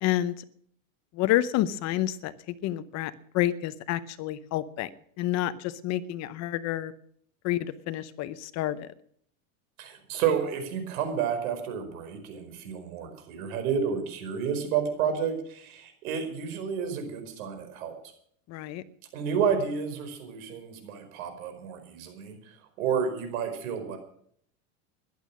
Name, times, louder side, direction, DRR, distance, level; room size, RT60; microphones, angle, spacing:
voice 1, 0.0-0.3 1.1-2.3 2.6-4.9 5.2-6.9 7.4-8.9 18.5-18.8, left 13 dB, 40° left, 14 dB, 0.8 m, -29 dB
voice 2, 9.8-17.9 19.1-24.0, right 7 dB, 75° right, 7 dB, 4.9 m, -30 dB
15.0 x 11.5 x 6.2 m, 0.64 s
supercardioid pair, 150°, 42 cm